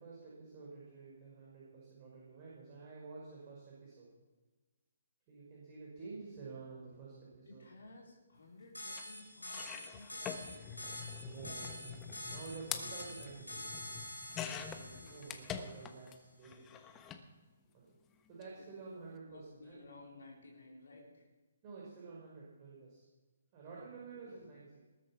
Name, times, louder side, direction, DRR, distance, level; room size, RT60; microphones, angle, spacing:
voice 1, 0.0-4.1 5.3-7.6 11.2-13.8 14.5-16.8 17.7-18.0 18.3-19.9 21.6-23.0 23.5-24.8, right 4 dB, 30° right, -5 dB, 5.1 m, -50 dB
voice 2, 7.5-10.9 14.5-15.3 19.3-21.3 23.6-23.8 24.2-24.4, left 2 dB, 60° left, -2 dB, 3.8 m, -56 dB
sound 1, 8.7-15.9, left 1 dB, 85° left, 4.1 m, -47 dB
sound 2, 9.0-9.1 9.4-16.2 16.4-17.2 18.3-18.4 18.7-18.8, left 8 dB, 15° left, 1.1 m, -45 dB
20.0 x 8.9 x 6.0 m, 1.2 s
figure-of-eight pair, 135°, 0 cm